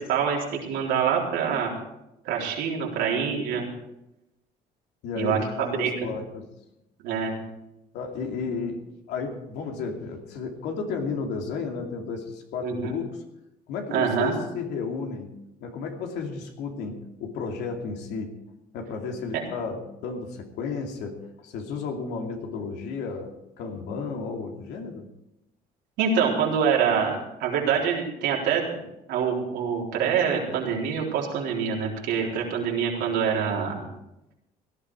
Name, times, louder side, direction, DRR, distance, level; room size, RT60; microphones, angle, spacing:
voice 1, 0.0-1.7 2.2-3.7 5.2-5.9 7.0-7.4 12.6-12.9 13.9-14.4 26.0-28.8 29.1-33.8, right 7 dB, 90° right, -2 dB, 4.0 m, -25 dB
voice 2, 5.0-6.4 7.9-8.8 9.1-13.1 13.7-15.3 15.6-18.3 18.7-25.1 32.2-32.3, left 5 dB, 90° left, 2 dB, 2.7 m, -33 dB
17.5 x 12.0 x 4.9 m, 0.90 s
cardioid pair, 110°, 17 cm